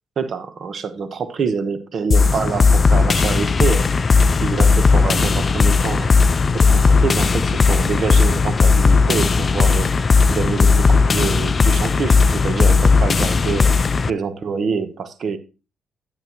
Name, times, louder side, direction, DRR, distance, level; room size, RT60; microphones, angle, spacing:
voice 1, 0.2-4.1 4.4-6.1 6.5-15.4, right 5 dB, 55° right, 1.0 m, -26 dB
sound 1, 2.1-14.1, left 4 dB, 35° left, 0.4 m, -16 dB
9.7 x 9.3 x 3.0 m
cardioid pair, 90°, 0 cm